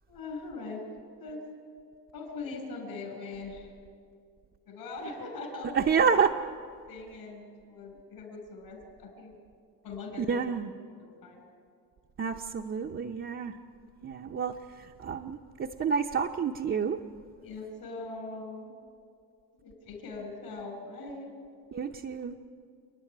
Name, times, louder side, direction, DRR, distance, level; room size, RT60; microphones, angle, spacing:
voice 1, 0.1-0.9 1.2-1.4 2.1-3.7 4.7-6.1 6.9-9.4 9.8-10.5 11.0-11.4 17.4-18.7 19.6-21.3, left 3 dB, 70° left, 4 dB, 5.7 m, -41 dB
voice 2, 5.8-6.3 10.2-10.7 12.2-13.5 14.0-17.0 21.7-22.4, right 6 dB, 30° right, 2 dB, 0.7 m, -29 dB
29.0 x 9.8 x 9.9 m, 2.3 s
cardioid pair, 130°, 38 cm